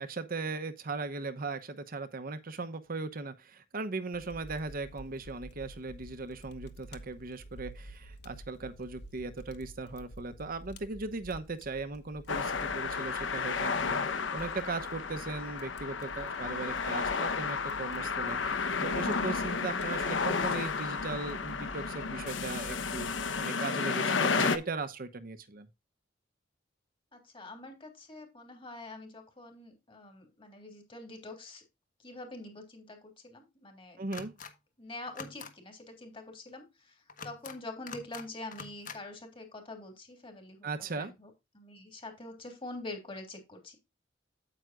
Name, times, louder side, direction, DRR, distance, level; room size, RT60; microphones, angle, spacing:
voice 1, 0.0-14.0 14.3-23.1 23.4-25.7 34.0-34.3 40.6-41.1, right 3 dB, 50° right, 0.9 m, -38 dB
Fire, 4.1-23.4, right 1 dB, 60° left, 1.1 m, -50 dB
sound 1, 12.3-24.6, left 5 dB, 90° left, 1.0 m, -32 dB
voice 2, 27.1-31.6 32.0-34.0 34.8-43.8, left 2 dB, 30° left, 3.2 m, -45 dB
sound 2, 34.1-34.5 35.1-35.5 37.1-37.6 37.9-38.3 38.5-39.0, left 5 dB, 45° left, 1.4 m, -44 dB
9.2 x 8.7 x 2.5 m
head